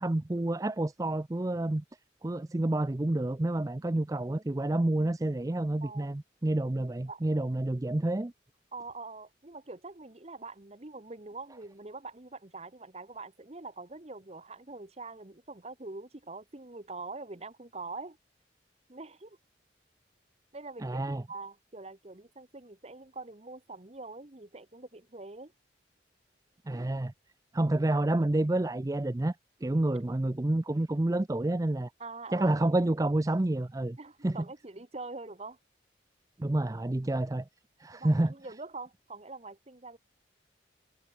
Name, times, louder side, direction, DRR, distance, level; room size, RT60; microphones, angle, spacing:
voice 1, 0.0-1.8 2.2-8.3 20.8-21.2 26.7-27.1 27.5-29.4 29.6-31.9 32.3-34.0 34.2-34.4 36.4-37.4 37.8-38.3, right 1 dB, 20° right, 0.4 m, -29 dB
voice 2, 5.8-6.1 6.7-7.2 8.7-18.2 18.9-19.4 20.5-25.5 32.0-32.6 34.0-35.6 37.9-40.0, right 3 dB, 35° right, 1.2 m, -44 dB
head